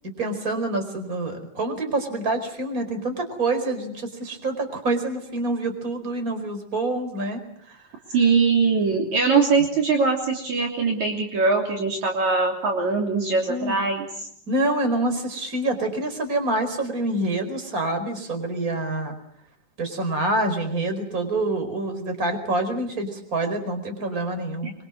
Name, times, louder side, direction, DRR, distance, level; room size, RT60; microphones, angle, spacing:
voice 1, 0.0-7.8 13.5-13.8 14.5-19.1 19.8-24.7, right 2 dB, 25° right, 7 dB, 5.0 m, -26 dB
voice 2, 8.1-14.0, right 4 dB, 55° right, 1 dB, 4.4 m, -21 dB
25.5 x 24.5 x 8.0 m, 0.68 s
omnidirectional pair, 4.1 m